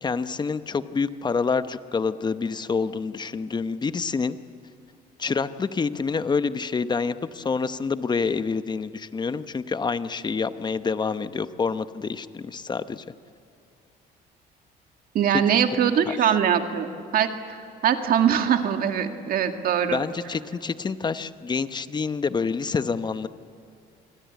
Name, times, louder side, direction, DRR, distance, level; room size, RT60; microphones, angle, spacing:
voice 1, 0.0-4.4 5.2-13.0 15.3-15.4 16.1-16.3 19.9-23.3, left 5 dB, 25° left, 12 dB, 0.9 m, -27 dB
voice 2, 15.1-17.6 17.8-20.0, right 8 dB, 60° right, 6 dB, 2.0 m, -22 dB
27.0 x 21.0 x 8.2 m, 2.5 s
cardioid pair, 110°, 17 cm